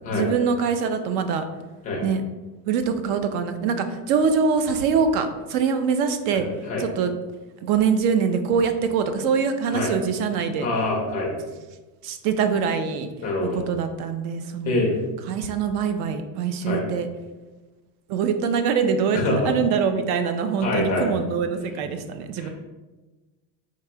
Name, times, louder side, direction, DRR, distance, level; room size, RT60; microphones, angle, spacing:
voice 1, 0.1-1.4 2.0-2.2 2.7-6.5 6.8-7.1 7.6-10.7 12.0-13.1 13.5-14.8 15.3-17.1 18.1-22.5, right 6 dB, 65° right, 8 dB, 0.6 m, -24 dB
voice 2, 6.3-6.9 9.7-9.9 10.6-11.3 13.2-13.6 14.6-15.0 16.6-16.8 19.1-19.5 20.6-21.1 21.8-21.9 22.4-22.5, left 2 dB, 20° left, -2 dB, 0.3 m, -25 dB
2.9 x 2.9 x 4.5 m, 1.2 s
cardioid pair, 175°, 48 cm